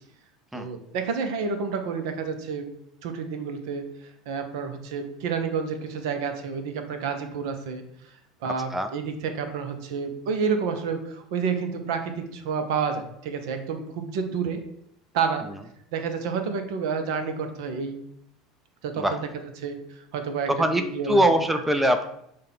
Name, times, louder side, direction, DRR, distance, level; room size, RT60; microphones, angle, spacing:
voice 1, 0.5-2.7 3.0-3.8 4.3-7.8 8.4-14.6 15.1-15.4 15.9-18.0 18.8-19.2 19.6-20.5 20.8-21.2 21.7-21.8, right 5 dB, 65° right, 7 dB, 0.6 m, -29 dB
voice 2, 8.4-8.9 15.4-15.6 19.0-19.2 20.5-22.1, right 1 dB, 5° right, 8 dB, 0.4 m, -23 dB
6.4 x 2.2 x 3.6 m, 0.74 s
figure-of-eight pair, 75°, 3 cm